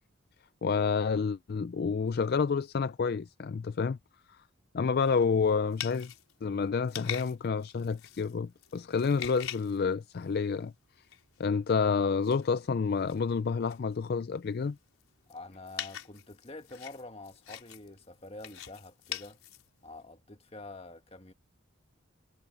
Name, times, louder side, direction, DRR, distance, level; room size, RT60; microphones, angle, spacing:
voice 1, 0.6-4.0 4.7-6.1 6.4-10.7 11.4-14.8, left 5 dB, 45° left, 0.3 m, -29 dB
sound 1, 5.0-10.6 11.1-11.7 12.0-20.0, left 10 dB, 75° left, 4.8 m, -44 dB
voice 2, 15.3-19.4 19.8-21.3, left 2 dB, 25° left, 1.6 m, -47 dB
head